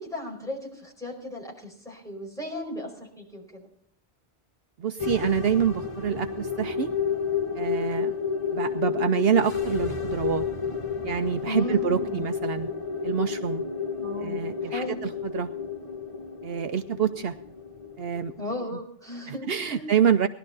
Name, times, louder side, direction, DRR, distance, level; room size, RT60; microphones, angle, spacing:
voice 1, 0.0-3.7 11.4-12.2 14.0-15.0 18.4-19.9, left 1 dB, 5° left, -2 dB, 4.7 m, -36 dB
voice 2, 4.8-6.9 7.5-8.1 8.5-10.4 11.0-12.7 13.0-13.6 14.2-15.5 16.4-17.3 18.0-18.3 19.3-20.3, right 8 dB, 70° right, 8 dB, 0.9 m, -26 dB
sound 1, 5.0-18.6, left 6 dB, 30° left, 1.2 m, -31 dB
19.5 x 12.0 x 4.0 m, 0.72 s
omnidirectional pair, 1.1 m